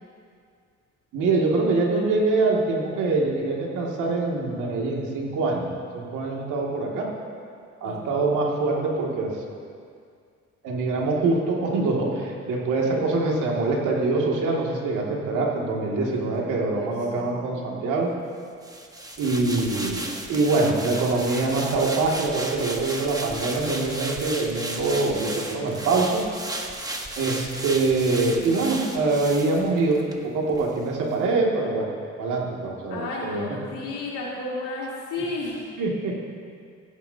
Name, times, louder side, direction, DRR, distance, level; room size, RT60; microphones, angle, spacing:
voice 1, 1.1-7.1 7.8-9.3 10.6-18.1 19.2-20.0 20.3-26.2 26.6-26.7 27.2-30.0 30.2-31.9 32.2-33.4 35.8-36.2, right 3 dB, 90° right, -2 dB, 2.5 m, -24 dB
voice 2, 7.8-8.4 12.8-12.9 16.0-17.7 32.9-35.7, left 2 dB, 90° left, -6 dB, 3.6 m, -34 dB
sound 1, 18.6-30.2 30.5-30.7, right 1 dB, 10° right, 1.3 m, -35 dB
16.0 x 15.5 x 2.9 m, 2.2 s
cardioid pair, 90°, 30 cm